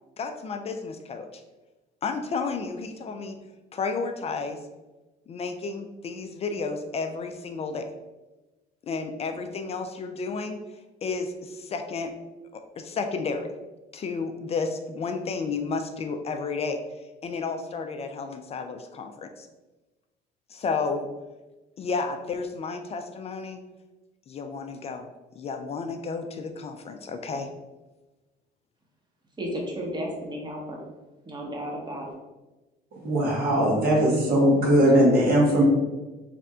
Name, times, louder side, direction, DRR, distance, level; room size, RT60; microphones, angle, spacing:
voice 1, 0.2-1.4 2.0-3.4 3.7-4.6 5.3-7.9 8.8-10.6 11.0-12.1 12.5-13.5 13.9-16.8 17.2-19.5 20.5-21.1 21.8-23.6 24.3-25.1 25.4-27.5, left 4 dB, 35° left, 6 dB, 0.4 m, -32 dB
voice 2, 29.4-30.8 31.3-32.1, equal, 25° right, -1 dB, 1.0 m, -33 dB
voice 3, 33.0-35.6, right 1 dB, 65° right, -3 dB, 1.4 m, -20 dB
3.3 x 2.5 x 4.2 m, 1.1 s
cardioid pair, 110°, 17 cm